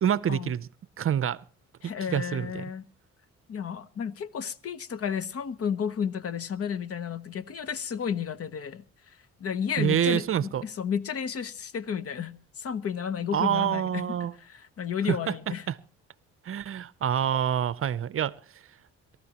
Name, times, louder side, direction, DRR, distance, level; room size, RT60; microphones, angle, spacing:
voice 1, 0.0-0.7 1.0-1.4 2.1-2.6 9.8-10.7 13.3-14.3 15.1-15.3 15.7-15.8 16.4-18.3, right 9 dB, 45° right, 0.6 m, -26 dB
voice 2, 1.8-2.9 3.5-15.7, left 7 dB, 50° left, 0.9 m, -32 dB
27.0 x 13.0 x 2.9 m
cardioid pair, 90°, 30 cm